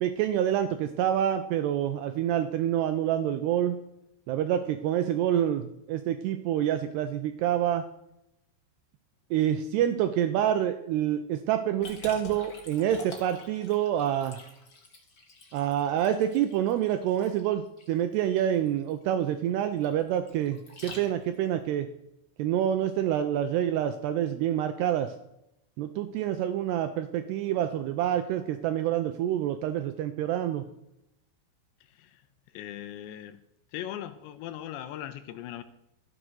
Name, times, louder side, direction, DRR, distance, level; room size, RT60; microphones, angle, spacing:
voice 1, 0.0-3.8 4.3-7.8 9.3-14.4 15.5-21.9 22.4-25.1 25.8-30.7, right 10 dB, 90° right, 9 dB, 2.4 m, -27 dB
Liquid, 11.8-21.5, left 2 dB, 45° left, 1.2 m, -47 dB
voice 2, 31.8-32.2 32.5-33.4 33.7-35.6, left 11 dB, 80° left, 11 dB, 2.6 m, -39 dB
14.5 x 7.4 x 6.4 m, 0.83 s
omnidirectional pair, 5.6 m